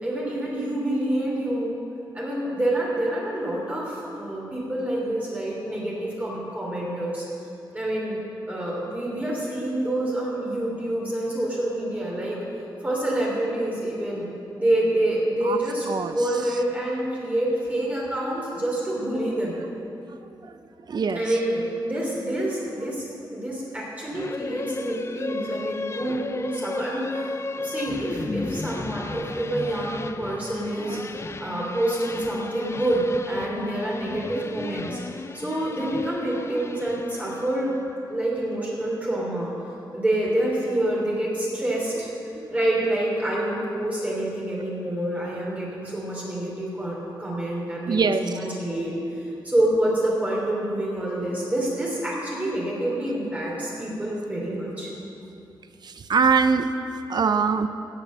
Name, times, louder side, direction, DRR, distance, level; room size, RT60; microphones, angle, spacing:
voice 1, 0.0-1.8 2.1-7.3 7.7-8.2 8.5-12.4 12.8-14.3 14.5-19.5 21.1-31.0 31.4-35.0 35.3-37.7 38.1-39.5 39.9-42.1 42.5-54.9, right 1 dB, 20° right, -5 dB, 3.1 m, -27 dB
voice 2, 20.9-21.4 25.6-25.7 26.4-26.5 30.8-31.0 42.3-42.5 47.9-48.2 55.8-56.7 57.1-57.7, right 5 dB, 60° right, 9 dB, 0.5 m, -23 dB
sound 1, 24.1-37.7, left 3 dB, 35° left, 0.5 m, -34 dB
17.5 x 6.9 x 7.4 m, 2.7 s
wide cardioid pair, 120°, 8 cm